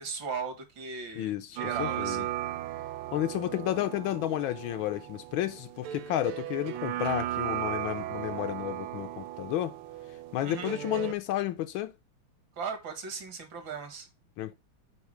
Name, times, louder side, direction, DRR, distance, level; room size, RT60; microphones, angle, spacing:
voice 1, 0.0-2.3 10.4-10.8 12.6-14.1, right 5 dB, 65° right, 2.4 m, -37 dB
voice 2, 1.2-2.2 3.1-9.8 10.3-11.9 14.4-14.5, left 13 dB, 75° left, 1.3 m, -32 dB
sound 1, 1.6-11.1, right 13 dB, 90° right, 1.5 m, -36 dB
7.0 x 4.8 x 4.9 m
omnidirectional pair, 2.3 m